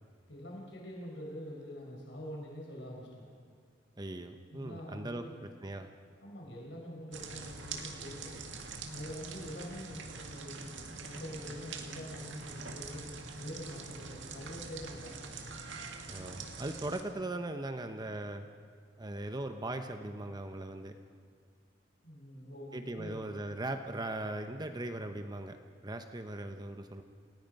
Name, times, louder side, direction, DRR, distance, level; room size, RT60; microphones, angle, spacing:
voice 1, 0.3-3.3 4.5-5.4 6.2-8.4 8.9-10.7 11.0-15.5 22.0-23.3, equal, 80° left, -1 dB, 4.8 m, -45 dB
voice 2, 4.0-5.2 5.6-5.9 16.1-18.4 19.0-20.9 22.7-25.6 25.8-27.0, right 2 dB, 25° right, 7 dB, 0.9 m, -39 dB
sound 1, 7.1-17.0, right 4 dB, 80° right, 2.0 m, -44 dB
29.0 x 19.0 x 5.4 m, 2.1 s
head